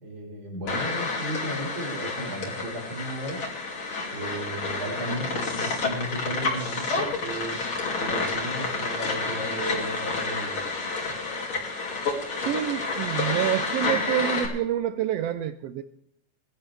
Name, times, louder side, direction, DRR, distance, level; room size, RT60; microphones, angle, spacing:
voice 1, 0.0-3.4 4.1-7.6 8.0-10.6, right 1 dB, 40° right, -1 dB, 5.0 m, -34 dB
sound 1, 0.7-14.5, left 3 dB, 45° left, 3.3 m, -29 dB
voice 2, 12.5-15.8, right 11 dB, 85° right, 12 dB, 1.4 m, -27 dB
21.0 x 11.5 x 3.4 m, 0.71 s
omnidirectional pair, 3.4 m